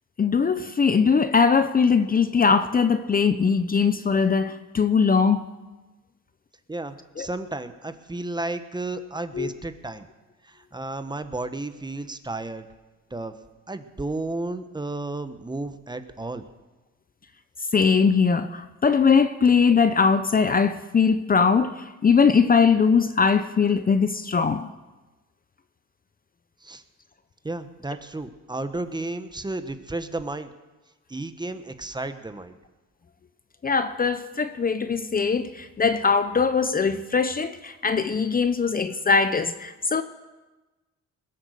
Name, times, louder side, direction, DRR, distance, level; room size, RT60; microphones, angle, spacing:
voice 1, 0.2-5.5 7.2-7.3 9.3-9.5 17.7-24.7 33.6-40.0, left 5 dB, 30° left, 11 dB, 0.7 m, -21 dB
voice 2, 6.7-10.1 10.4-12.6 13.1-13.3 13.7-16.4 26.6-26.8 27.4-30.5 31.1-32.6, right 2 dB, 15° right, 10 dB, 1.0 m, -33 dB
21.0 x 8.1 x 6.6 m, 1.2 s
cardioid pair, 90°, 30 cm